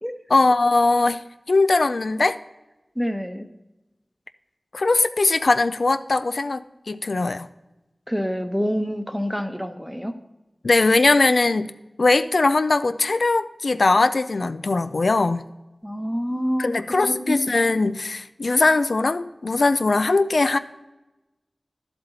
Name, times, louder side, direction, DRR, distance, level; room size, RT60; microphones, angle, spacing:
voice 1, 0.3-2.4 4.7-7.5 10.6-11.7 12.0-15.5 16.6-20.6, left 3 dB, 85° left, 12 dB, 0.4 m, -20 dB
voice 2, 3.0-3.5 8.1-10.1 15.8-16.7 17.0-17.5, equal, ahead, 8 dB, 0.9 m, -27 dB
11.5 x 7.8 x 4.1 m, 1.0 s
wide cardioid pair, 55°, 0 cm